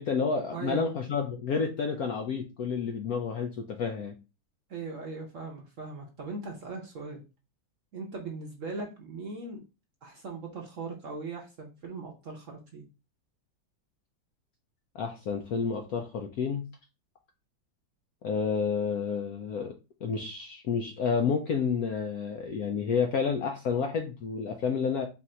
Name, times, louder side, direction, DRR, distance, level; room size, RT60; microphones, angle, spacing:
voice 1, 0.0-4.1 14.9-16.6 18.2-19.7 20.0-25.1, left 6 dB, 70° left, 4 dB, 0.9 m, -30 dB
voice 2, 0.5-0.9 4.7-7.2 7.9-9.6 10.0-12.9, right 4 dB, 55° right, 1 dB, 0.9 m, -39 dB
4.2 x 2.5 x 4.2 m, 0.29 s
omnidirectional pair, 2.1 m